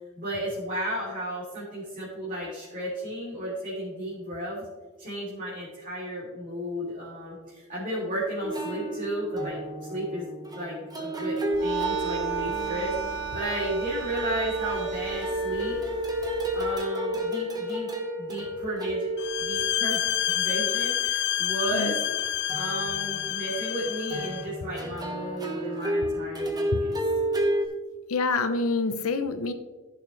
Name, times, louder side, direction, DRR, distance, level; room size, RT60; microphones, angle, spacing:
voice 1, 0.2-4.6 5.0-13.0 13.3-15.8 16.5-17.9 18.2-19.1 19.4-22.0 22.5-27.0, equal, 40° right, -8 dB, 3.2 m, -33 dB
sound 1, 8.4-20.4 22.5-23.3 24.1-27.7, right 1 dB, 20° right, 1.2 m, -31 dB
sound 2, 11.5-16.7, right 7 dB, 55° right, 2.1 m, -35 dB
sound 3, 19.2-24.4, left 11 dB, 50° left, 0.4 m, -28 dB
voice 2, 28.1-29.5, left 3 dB, 80° left, 8 dB, 0.8 m, -26 dB
15.0 x 6.6 x 3.3 m, 1.2 s
head